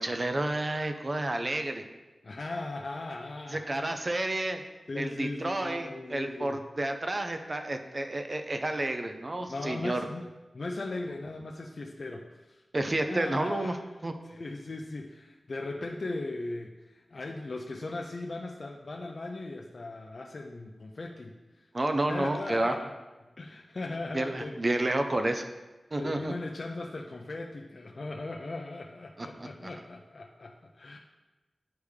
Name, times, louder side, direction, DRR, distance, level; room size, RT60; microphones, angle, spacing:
voice 1, 0.0-1.8 3.5-4.6 5.0-10.1 12.7-13.8 14.0-14.1 21.7-22.8 24.1-25.4 25.9-26.3 29.2-29.7, right 1 dB, 35° right, 6 dB, 0.4 m, -30 dB
voice 2, 2.2-3.9 4.9-6.6 9.5-10.3 10.5-12.6 13.1-13.8 14.2-21.3 22.1-22.9 23.4-24.6 26.0-31.0, left 2 dB, 50° left, 1 dB, 0.4 m, -38 dB
9.7 x 3.5 x 3.2 m, 1.1 s
wide cardioid pair, 105°, 0 cm